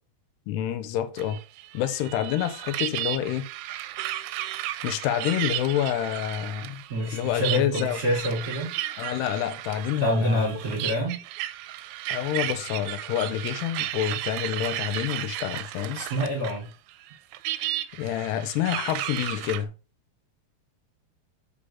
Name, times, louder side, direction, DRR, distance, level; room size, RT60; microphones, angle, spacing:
voice 1, 0.5-1.4 1.7-3.5 4.8-6.8 7.1-8.0 9.0-10.5 12.1-16.0 18.0-19.7, left 11 dB, 90° left, 2.8 m, -28 dB
sound 1, 1.2-16.6 16.9-19.6, right 14 dB, 85° right, 2.7 m, -34 dB
voice 2, 6.9-8.7 10.0-11.2 15.9-16.7, equal, 20° right, 2.6 m, -27 dB
5.4 x 5.0 x 5.6 m
omnidirectional pair, 4.8 m